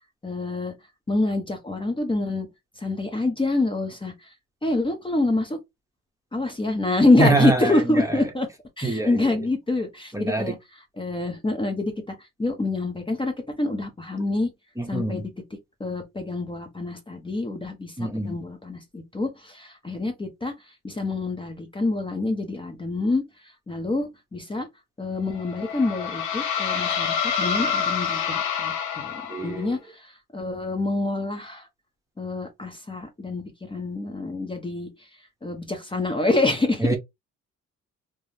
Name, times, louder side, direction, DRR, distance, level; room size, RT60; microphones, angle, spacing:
voice 1, 0.2-0.7 1.1-2.5 2.8-4.3 4.6-5.6 6.3-8.5 8.8-10.6 11.0-14.5 14.9-15.3 15.8-24.7 25.0-31.7 32.2-35.1 35.4-36.9, left 2 dB, 15° left, 0.7 m, -26 dB
voice 2, 7.2-8.1 8.8-9.4 10.1-10.5 14.8-15.2 18.0-18.4 29.3-29.8 36.8-37.0, right 2 dB, 10° right, 0.8 m, -24 dB
sound 1, 25.3-29.7, left 7 dB, 75° left, 0.8 m, -27 dB
3.4 x 2.0 x 2.7 m
cardioid pair, 90°, 30 cm